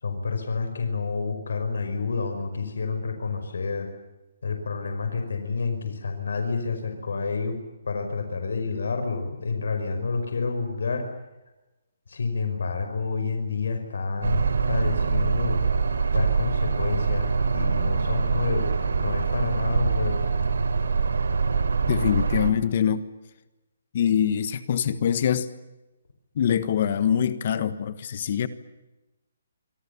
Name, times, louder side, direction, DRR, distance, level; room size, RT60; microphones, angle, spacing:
voice 1, 0.0-3.9 4.4-7.5 7.9-11.1 12.1-15.6 16.1-20.2, left 4 dB, 80° left, 6 dB, 5.4 m, -29 dB
sound 1, 14.2-22.5, right 5 dB, 85° right, 3.7 m, -24 dB
voice 2, 21.9-23.0 23.9-25.5 26.4-28.5, left 8 dB, 40° left, 14 dB, 1.4 m, -24 dB
26.5 x 24.5 x 7.1 m, 1.0 s
hypercardioid pair, 170°, 0 cm